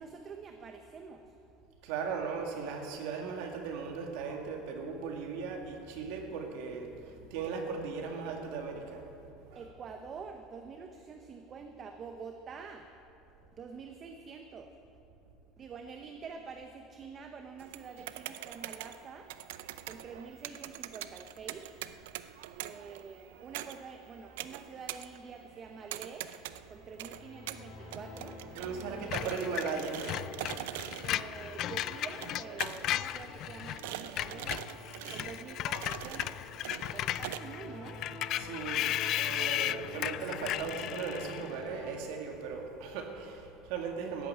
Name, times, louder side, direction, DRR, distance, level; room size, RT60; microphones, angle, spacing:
voice 1, 0.0-1.3 9.5-12.8 13.6-14.7 15.6-19.3 19.9-21.7 22.6-26.3 26.7-28.4 28.9-29.3 31.0-34.7 35.1-36.4 36.9-38.0, right 5 dB, 30° right, 5 dB, 0.8 m, -47 dB
voice 2, 1.8-9.0 9.5-9.7 28.5-30.0 38.4-44.3, right 5 dB, 70° right, 2 dB, 2.1 m, -37 dB
sound 1, 17.6-37.4, right 13 dB, 90° right, 0.5 m, -44 dB
sound 2, 26.5-41.9, left 2 dB, 80° left, 4.1 m, -49 dB
Screech, 29.1-33.8 34.1-41.5, left 13 dB, 45° left, 0.3 m, -35 dB
13.5 x 9.0 x 8.8 m, 2.8 s
cardioid pair, 150°, 0 cm